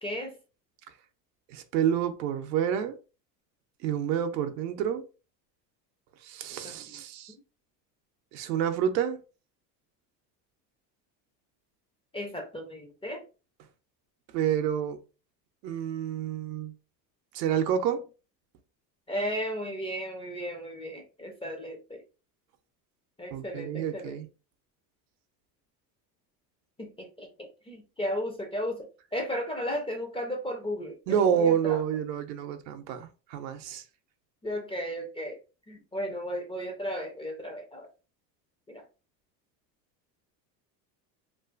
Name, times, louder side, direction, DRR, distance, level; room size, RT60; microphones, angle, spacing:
voice 1, 0.0-0.4 6.6-6.8 12.1-13.2 19.1-22.0 23.2-24.2 26.8-31.8 34.4-35.4 35.7-37.9 38.7-38.9, equal, 10° left, 0.4 m, -35 dB
voice 2, 1.5-3.0 3.8-5.1 6.2-7.3 8.3-9.2 14.3-15.0 15.6-16.7 17.3-18.0 23.3-24.2 31.1-33.8, right 8 dB, 80° right, 0.7 m, -28 dB
2.6 x 2.4 x 2.4 m
supercardioid pair, 90°, 50 cm